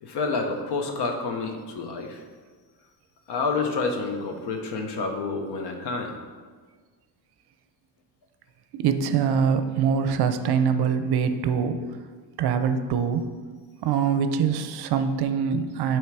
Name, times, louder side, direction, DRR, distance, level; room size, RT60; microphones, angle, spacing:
voice 1, 0.0-2.2 3.3-6.1, left 4 dB, 65° left, 4 dB, 1.0 m, -29 dB
voice 2, 8.7-11.8 12.4-13.3 13.8-16.0, right 7 dB, 60° right, 9 dB, 0.6 m, -24 dB
7.3 x 3.2 x 4.7 m, 1.5 s
cardioid pair, 110°, 44 cm